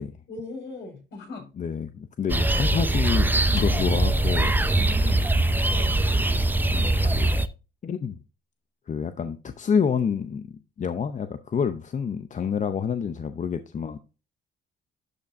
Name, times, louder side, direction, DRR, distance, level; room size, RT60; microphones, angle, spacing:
voice 1, 0.3-1.5 4.8-5.2 5.7-6.0, left 2 dB, 65° left, 5.2 m, -38 dB
voice 2, 1.6-4.5 6.2-6.4 6.7-7.3 7.8-8.2 8.9-14.0, left 6 dB, 40° left, 0.6 m, -28 dB
sound 1, 2.3-7.5, right 2 dB, 10° right, 0.5 m, -22 dB
Drum, 3.6-5.5, left 8 dB, 80° left, 1.0 m, -37 dB
11.5 x 5.8 x 2.6 m
cardioid pair, 90°, 20 cm